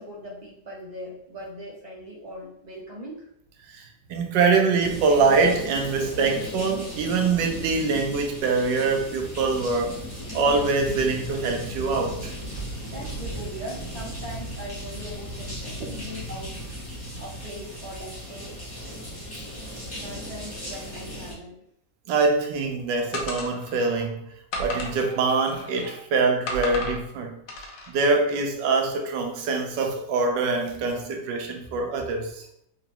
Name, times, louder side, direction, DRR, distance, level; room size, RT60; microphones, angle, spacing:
voice 1, 0.0-3.3 12.8-16.6 17.2-18.6 19.9-21.6, equal, 40° right, -4 dB, 0.6 m, -40 dB
voice 2, 4.1-10.0 10.3-12.4 15.8-15.9 22.1-24.3 24.6-27.4 27.9-32.4, right 4 dB, 80° right, 3 dB, 1.3 m, -24 dB
sound 1, 4.8-21.3, equal, 20° left, 0.7 m, -36 dB
sound 2, 23.1-23.9 24.5-26.0 26.5-27.0 27.5-27.9, left 1 dB, 75° left, 1.3 m, -34 dB
3.9 x 2.9 x 2.9 m, 0.72 s
omnidirectional pair, 1.9 m